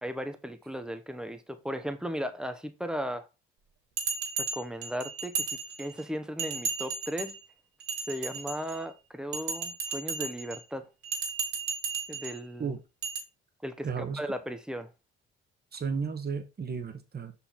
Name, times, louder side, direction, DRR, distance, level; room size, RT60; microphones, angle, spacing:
voice 1, 0.0-3.3 4.4-7.4 8.1-10.9 12.1-12.7 13.6-14.9, equal, ahead, 1.0 m, -36 dB
Bell, 4.0-6.0 6.4-7.4 7.8-8.8 9.3-10.6 11.0-12.4 13.0-13.2, right 5 dB, 65° right, 1.9 m, -34 dB
voice 2, 13.8-14.2 15.7-17.3, right 5 dB, 30° right, 1.3 m, -33 dB
5.6 x 4.2 x 4.0 m
hypercardioid pair, 55°, 30 cm